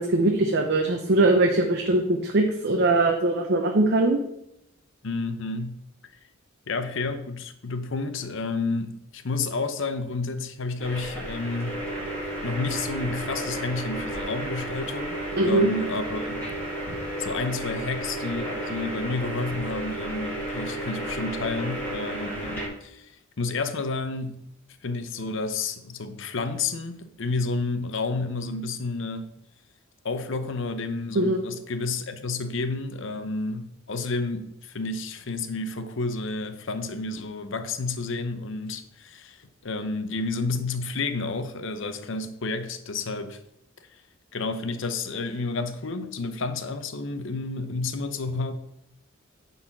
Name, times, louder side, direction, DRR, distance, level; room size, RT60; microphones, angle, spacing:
voice 1, 0.0-4.2 15.4-15.7 31.2-31.4, right 2 dB, 55° right, 0.8 m, -21 dB
voice 2, 5.0-5.8 6.7-11.8 12.4-16.5 17.2-24.4 24.8-29.4 30.0-43.4 43.9-44.0 44.3-48.5, left 3 dB, 65° left, 0.8 m, -30 dB
sound 1, 10.8-22.7, right 1 dB, 10° left, 2.9 m, -32 dB
9.7 x 4.2 x 5.9 m
head